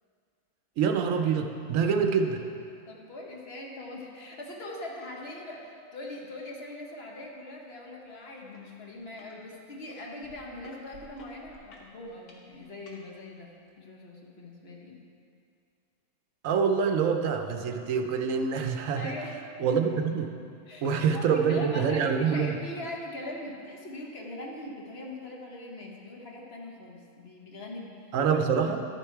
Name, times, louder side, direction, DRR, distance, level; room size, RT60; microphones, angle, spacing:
voice 1, 0.8-2.4 16.4-19.1 19.6-20.3 20.8-22.6 28.1-28.8, right 6 dB, 65° right, 5 dB, 1.0 m, -26 dB
voice 2, 2.9-13.5 13.8-15.0 19.0-19.3 20.7-27.9, left 1 dB, 45° left, -1 dB, 1.3 m, -41 dB
sound 1, 8.5-8.7 9.0-9.4 9.9-13.0 13.7-13.8, left 2 dB, 85° left, 1.7 m, -52 dB
12.0 x 6.7 x 4.6 m, 2.4 s
omnidirectional pair, 1.6 m